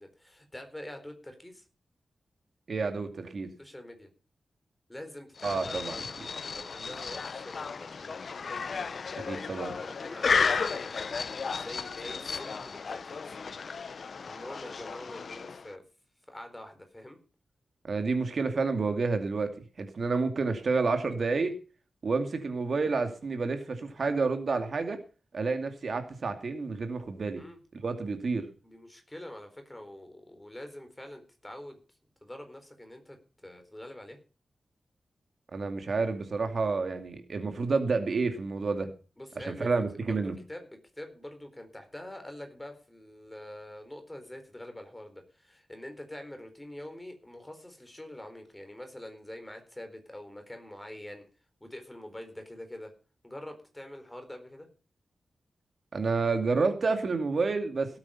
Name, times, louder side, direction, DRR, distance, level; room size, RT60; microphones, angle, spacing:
voice 1, 0.0-1.6 3.6-4.1 4.9-6.1 6.5-8.2 9.3-11.2 11.5-13.4 14.2-15.8 16.3-17.2 27.4-27.6 28.6-31.8 32.2-34.2 39.2-40.2 40.5-40.7 41.0-51.2 51.6-52.9 53.2-54.7, left 1 dB, 10° left, 6 dB, 4.2 m, -45 dB
voice 2, 2.7-3.5 5.4-5.9 9.2-9.7 17.8-19.5 19.8-21.5 22.0-25.0 25.3-27.4 27.8-28.4 35.5-38.9 39.4-40.3 55.9-57.9, right 4 dB, 55° right, 7 dB, 2.3 m, -29 dB
sound 1, 5.4-15.8, left 5 dB, 55° left, 0.8 m, -33 dB
17.5 x 8.9 x 5.7 m, 0.36 s
wide cardioid pair, 130°, 0 cm